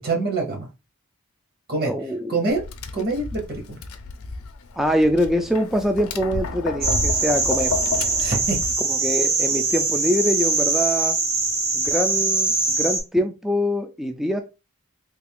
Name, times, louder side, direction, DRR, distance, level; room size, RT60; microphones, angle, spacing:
voice 1, 0.0-0.7 1.7-1.9 2.3-2.6 2.9-3.8 8.2-8.6, right 3 dB, 45° right, 2 dB, 0.9 m, -25 dB
voice 2, 1.9-2.3 4.8-7.7 8.9-11.2 11.7-14.4, equal, ahead, 5 dB, 0.3 m, -24 dB
Tap, 2.5-8.7, left 4 dB, 75° left, 0.5 m, -31 dB
sound 1, 6.8-13.0, right 3 dB, 65° right, 1.5 m, -22 dB
3.4 x 2.4 x 3.4 m, 0.28 s
head